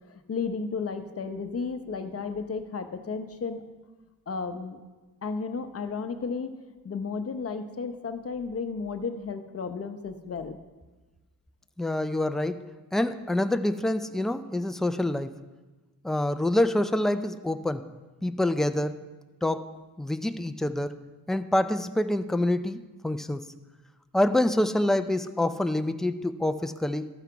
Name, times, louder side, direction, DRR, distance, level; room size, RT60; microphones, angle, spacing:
voice 1, 0.1-3.6 4.3-4.8 5.2-6.5 6.8-10.6, left 5 dB, 40° left, 8 dB, 0.8 m, -33 dB
voice 2, 11.8-15.3 16.0-17.9 18.2-19.0 19.4-21.0 21.3-23.5 24.1-27.1, left 1 dB, ahead, 10 dB, 0.3 m, -26 dB
13.0 x 5.8 x 4.7 m, 1.2 s
cardioid pair, 95°, 36 cm